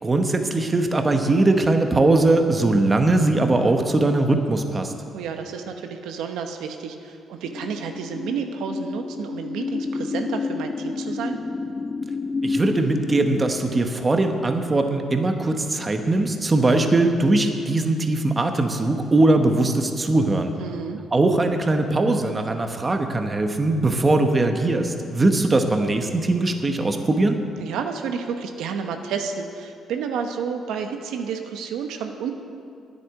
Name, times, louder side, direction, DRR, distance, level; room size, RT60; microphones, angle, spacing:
voice 1, 0.0-4.9 12.4-20.5 21.1-27.4, right 2 dB, 25° right, 5 dB, 1.1 m, -20 dB
voice 2, 5.1-11.4 20.6-21.0 27.6-32.3, right 6 dB, 90° right, 5 dB, 1.0 m, -30 dB
sound 1, 7.4-13.5, left 4 dB, 30° left, 0.5 m, -29 dB
10.0 x 8.5 x 9.7 m, 2.4 s
cardioid pair, 110°, 0 cm